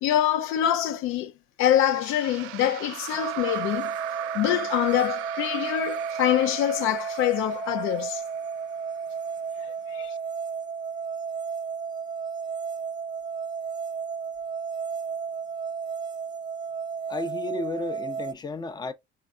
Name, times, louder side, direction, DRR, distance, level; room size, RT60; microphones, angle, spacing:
voice 1, 0.0-1.3 1.6-3.9 4.3-8.2 9.6-10.1, left 11 dB, 80° left, 0.5 m, -25 dB
sound 1, 1.7-9.0, right 14 dB, 90° right, 0.4 m, -38 dB
sound 2, 3.2-18.3, right 6 dB, 20° right, 0.4 m, -33 dB
voice 2, 17.1-18.9, left 2 dB, 20° left, 0.6 m, -33 dB
4.5 x 3.4 x 2.4 m
cardioid pair, 115°, 21 cm